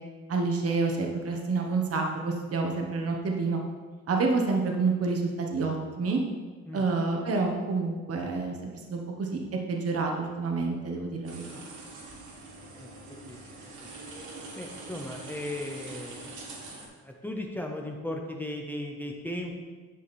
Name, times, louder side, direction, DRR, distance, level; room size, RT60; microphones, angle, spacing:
voice 1, 0.3-3.6 4.1-6.2 6.7-9.4 9.7-11.6, right 3 dB, 50° right, 2 dB, 1.2 m, -28 dB
sound 1, 11.2-16.9, right 2 dB, 85° right, 1.9 m, -44 dB
voice 2, 14.5-16.4 17.0-19.6, left 1 dB, 5° left, 1 dB, 1.0 m, -36 dB
10.5 x 5.1 x 4.2 m, 1.4 s
cardioid pair, 90°, 30 cm